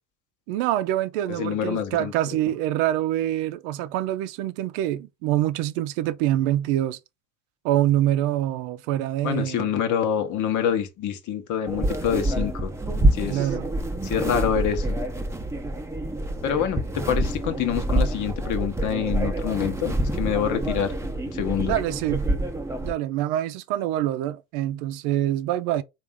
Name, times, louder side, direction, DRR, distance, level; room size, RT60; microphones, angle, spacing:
voice 1, 0.5-7.0 7.6-9.7 13.3-13.7 21.7-22.3 22.8-25.8, right 13 dB, 75° right, 0.5 m, -25 dB
voice 2, 1.3-2.1 9.2-12.7 13.1-13.5 14.0-15.0 16.4-20.9 21.3-21.7, left 8 dB, 55° left, 0.9 m, -26 dB
sound 1, 11.7-22.9, right 1 dB, 10° right, 0.7 m, -27 dB
3.4 x 2.5 x 3.5 m
hypercardioid pair, 75°, 35 cm